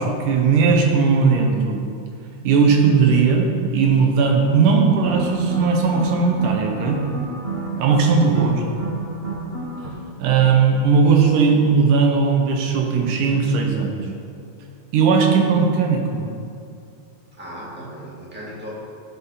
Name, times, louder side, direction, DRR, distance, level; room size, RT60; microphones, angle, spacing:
voice 1, 0.0-1.8 2.4-7.0 7.8-8.5 10.2-13.9 14.9-16.3, right 5 dB, 90° right, 2 dB, 2.6 m, -17 dB
sound 1, 4.9-9.9, right 2 dB, 40° right, 0.8 m, -30 dB
voice 2, 8.1-8.5 17.3-18.7, right 1 dB, 5° right, -6 dB, 1.4 m, -35 dB
14.5 x 6.0 x 4.1 m, 2.4 s
omnidirectional pair, 3.5 m